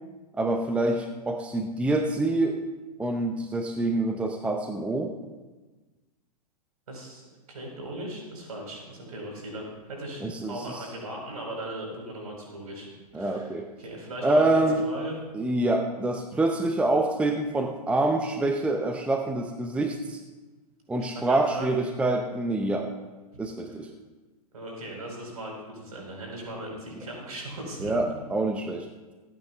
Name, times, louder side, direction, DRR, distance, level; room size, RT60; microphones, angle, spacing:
voice 1, 0.4-2.6 3.0-5.1 10.2-10.8 13.1-13.7 14.2-14.8 15.3-20.2 20.9-22.9 23.4-23.9 27.8-28.9, right 2 dB, 5° right, 4 dB, 0.7 m, -26 dB
voice 2, 6.9-12.9 13.1-15.1 21.0-21.7 24.5-27.9, right 1 dB, 65° right, 0 dB, 4.3 m, -38 dB
26.0 x 9.2 x 2.4 m, 1.2 s
figure-of-eight pair, 105°, 20 cm